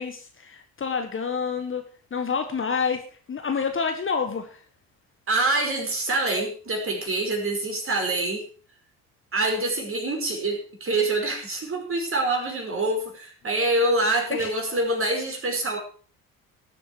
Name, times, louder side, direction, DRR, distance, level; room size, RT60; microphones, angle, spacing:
voice 1, 0.0-3.0 3.3-4.6 13.6-13.7 14.3-14.5, left 5 dB, 30° left, 6 dB, 1.5 m, -28 dB
voice 2, 5.3-8.4 9.3-15.8, right 2 dB, 30° right, 2 dB, 5.2 m, -25 dB
18.5 x 7.8 x 4.8 m, 0.40 s
figure-of-eight pair, 55°, 43 cm